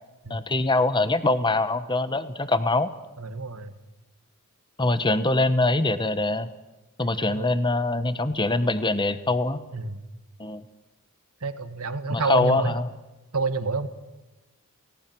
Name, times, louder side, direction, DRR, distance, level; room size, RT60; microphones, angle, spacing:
voice 1, 0.3-2.9 4.8-6.5 7.0-9.6 10.4-10.6 12.1-12.9, left 2 dB, 20° left, 13 dB, 1.2 m, -23 dB
voice 2, 3.2-3.7 7.0-7.7 9.7-10.0 11.4-12.8 13.3-13.9, right 3 dB, 75° right, 10 dB, 1.9 m, -29 dB
29.5 x 18.5 x 6.2 m, 1.1 s
head